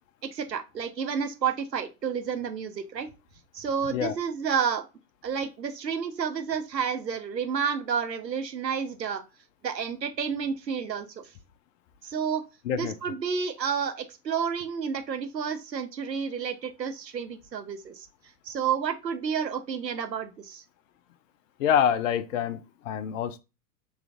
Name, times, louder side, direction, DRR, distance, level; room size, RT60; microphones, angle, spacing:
voice 1, 0.2-3.1 3.5-4.9 5.2-9.2 9.6-11.2 12.0-12.4 12.7-18.1 18.4-20.6, right 7 dB, 85° right, 0.8 m, -30 dB
voice 2, 21.6-23.4, left 8 dB, 55° left, 0.5 m, -26 dB
6.0 x 3.1 x 2.4 m
figure-of-eight pair, 90°, 49 cm